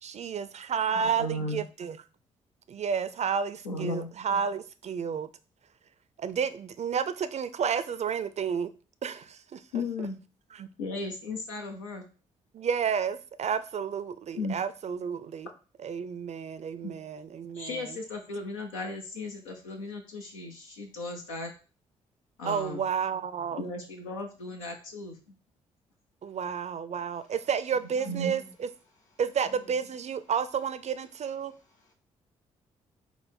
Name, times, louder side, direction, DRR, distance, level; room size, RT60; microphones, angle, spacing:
voice 1, 0.0-2.0 2.7-5.3 6.2-8.7 9.0-9.6 10.0-10.1 10.5-10.7 12.5-15.5 15.8-18.0 22.4-23.6 26.2-28.7 29.2-31.5, right 7 dB, 45° right, 0.4 m, -31 dB
voice 2, 1.0-1.6 3.6-4.1 9.7-10.2 10.8-12.0 14.4-14.5 17.5-21.5 22.4-22.8 23.5-25.2 28.1-28.3, left 2 dB, 90° left, 0.5 m, -35 dB
voice 3, 28.0-28.5 29.5-29.6 31.8-31.9, left 3 dB, 50° left, 1.9 m, -49 dB
5.5 x 2.1 x 4.2 m
hypercardioid pair, 45°, 17 cm